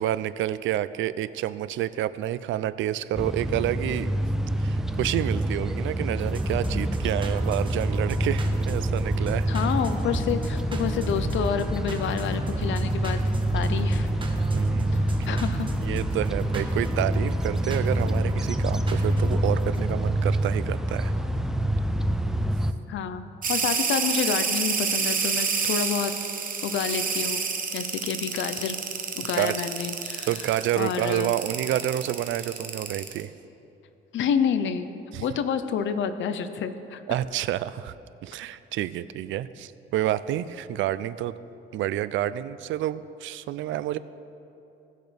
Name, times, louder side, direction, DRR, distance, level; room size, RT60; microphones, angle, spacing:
voice 1, 0.0-4.1 4.6-9.5 14.5-15.0 15.8-21.1 29.3-29.6 30.3-33.3 35.1-35.2 37.1-38.0 38.2-41.3 41.7-44.0, right 13 dB, 75° right, 15 dB, 0.4 m, -29 dB
sound 1, 3.1-22.7, right 1 dB, ahead, 0.5 m, -26 dB
sound 2, 6.2-19.9, right 1 dB, 25° right, 1.3 m, -36 dB
voice 2, 9.5-13.2 13.5-14.1 15.3-15.7 22.9-26.1 26.6-27.4 27.7-28.8 29.1-30.3 30.7-31.4 34.1-34.9 35.2-37.0, left 7 dB, 75° left, 10 dB, 0.7 m, -28 dB
sound 3, 23.4-33.2, right 5 dB, 45° right, 1.0 m, -28 dB
18.0 x 6.4 x 3.4 m, 2.9 s
cardioid pair, 90°, 20 cm